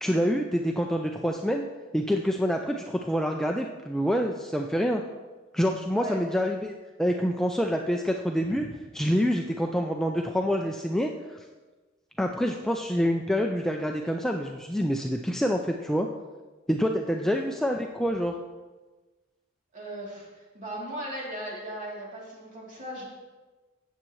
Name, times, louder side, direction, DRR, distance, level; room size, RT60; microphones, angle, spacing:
voice 1, 0.0-1.7 1.9-5.0 5.5-8.6 8.9-11.4 12.2-16.1 16.7-18.3, equal, ahead, 2 dB, 0.4 m, -27 dB
voice 2, 5.9-6.2 8.5-8.7 17.1-17.3 19.7-23.0, equal, 35° right, -4 dB, 3.0 m, -38 dB
15.5 x 7.5 x 3.1 m, 1.3 s
head